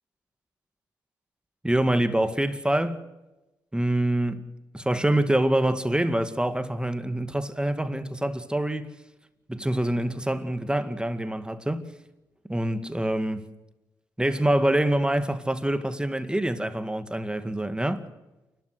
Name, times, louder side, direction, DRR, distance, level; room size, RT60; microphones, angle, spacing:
voice 1, 1.6-3.0 3.7-4.4 4.7-8.9 9.5-11.8 12.5-13.4 14.2-18.0, right 1 dB, 10° right, 2.0 m, -25 dB
29.0 x 12.0 x 7.9 m
supercardioid pair, 55°, 9 cm